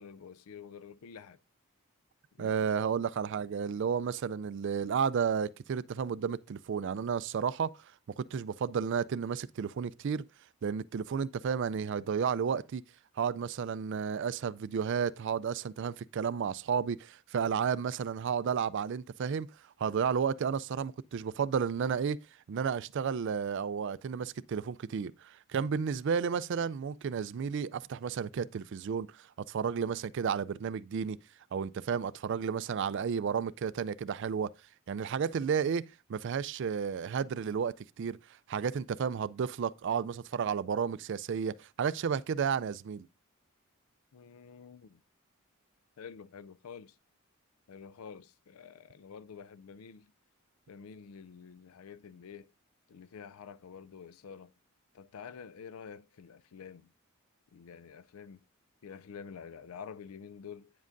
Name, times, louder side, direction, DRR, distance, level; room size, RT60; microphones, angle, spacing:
voice 1, 0.0-1.4 2.3-3.0 44.1-45.0 46.0-47.0 47.7-50.1 50.7-52.5 52.9-54.5 54.9-56.9 57.5-58.4 58.8-60.7, left 6 dB, 75° left, 0.4 m, -48 dB
voice 2, 2.4-7.7 8.2-10.2 10.6-12.8 13.2-19.5 19.8-22.2 22.5-31.2 31.5-34.5 34.9-35.8 36.1-38.2 38.5-43.1, right 6 dB, 55° right, 0.3 m, -32 dB
9.3 x 7.4 x 2.6 m
head